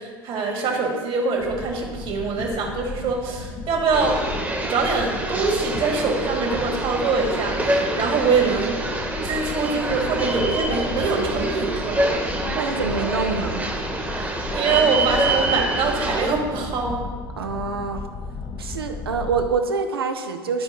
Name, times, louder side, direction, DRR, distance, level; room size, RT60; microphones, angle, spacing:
voice 1, 0.0-4.2 4.6-8.7 9.2-12.1 14.1-17.0, right 4 dB, 50° right, 1 dB, 1.7 m, -24 dB
sound 1, 1.4-19.5, left 4 dB, 35° left, 0.7 m, -35 dB
sound 2, 3.9-16.3, right 2 dB, 15° right, 1.2 m, -26 dB
voice 2, 12.5-13.7 17.4-18.0 18.6-20.6, right 5 dB, 80° right, 6 dB, 0.6 m, -26 dB
11.5 x 4.4 x 3.0 m, 1.5 s
figure-of-eight pair, 70°, 12 cm